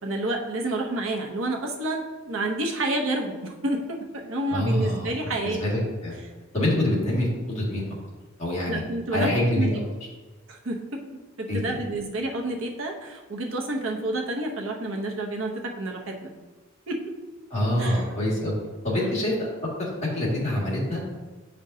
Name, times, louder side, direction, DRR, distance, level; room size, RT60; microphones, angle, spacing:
voice 1, 0.0-5.6 8.7-9.7 10.5-11.0 11.4-16.3 16.9-17.0 17.8-18.1, right 2 dB, 75° right, 2 dB, 0.9 m, -29 dB
voice 2, 4.5-5.1 5.4-6.2 6.5-7.9 8.4-8.8 9.1-9.8 11.5-11.6 17.5-18.5 18.8-19.3 19.8-19.9 20.1-21.0, left 1 dB, 35° left, -6 dB, 2.0 m, -25 dB
7.7 x 5.2 x 2.7 m, 1.2 s
head